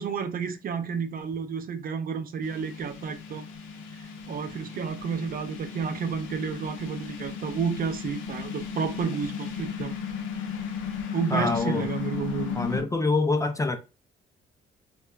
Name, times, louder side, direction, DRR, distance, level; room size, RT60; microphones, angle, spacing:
voice 1, 0.0-3.5 4.3-10.0 11.1-12.6, right 6 dB, 45° right, 0.4 m, -31 dB
sound 1, 2.4-12.8, left 7 dB, 80° left, 0.6 m, -35 dB
voice 2, 11.3-11.9 12.5-13.8, left 3 dB, 15° left, 0.3 m, -25 dB
2.9 x 2.2 x 2.3 m
cardioid pair, 90°, 20 cm